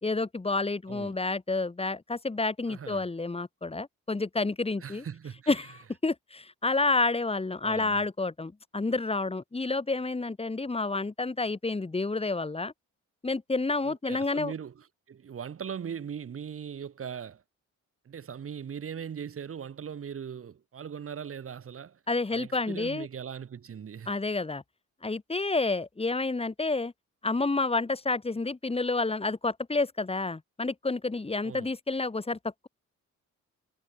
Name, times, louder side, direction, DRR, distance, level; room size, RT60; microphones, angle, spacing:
voice 1, 0.0-5.0 5.5-5.7 6.0-12.7 13.2-14.5 22.1-23.1 24.1-24.6 25.0-26.9 27.2-32.7, left 3 dB, 20° left, 3.4 m, -29 dB
voice 2, 0.9-1.2 2.7-3.1 4.8-5.6 7.6-8.0 13.8-17.4 18.0-22.0 22.3-24.2 31.4-31.7, right 7 dB, 45° right, 2.5 m, -40 dB
cardioid pair, 90°, 30 cm